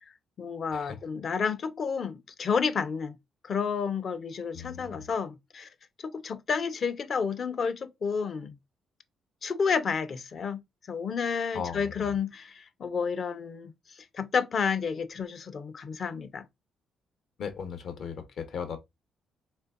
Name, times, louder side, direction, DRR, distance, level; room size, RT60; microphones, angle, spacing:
voice 1, 0.4-3.1 3.4-5.7 6.0-8.5 9.4-10.6 10.9-13.7 14.1-16.5, left 6 dB, 50° left, 0.7 m, -30 dB
voice 2, 4.5-5.1 11.5-12.1 17.4-18.8, left 7 dB, 65° left, 1.1 m, -37 dB
4.2 x 3.5 x 2.6 m
cardioid pair, 90°, 0 cm